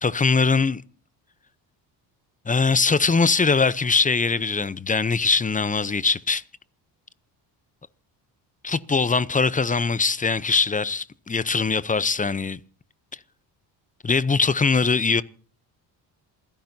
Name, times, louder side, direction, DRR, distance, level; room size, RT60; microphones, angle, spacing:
voice 1, 0.0-0.8 2.5-6.4 8.6-12.6 14.0-15.2, left 4 dB, 20° left, 0.7 m, -21 dB
27.5 x 10.5 x 2.8 m
cardioid pair, 90°, 45 cm